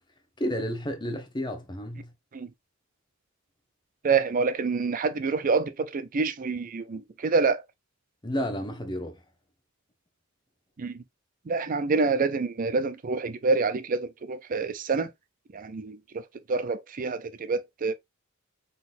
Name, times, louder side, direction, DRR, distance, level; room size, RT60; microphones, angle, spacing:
voice 1, 0.4-2.1 8.2-9.2, equal, 20° left, 1.0 m, -31 dB
voice 2, 4.0-7.6 10.8-11.0 11.5-15.1 15.5-16.0 16.5-17.9, right 4 dB, 40° right, 0.5 m, -27 dB
4.0 x 3.9 x 2.6 m
head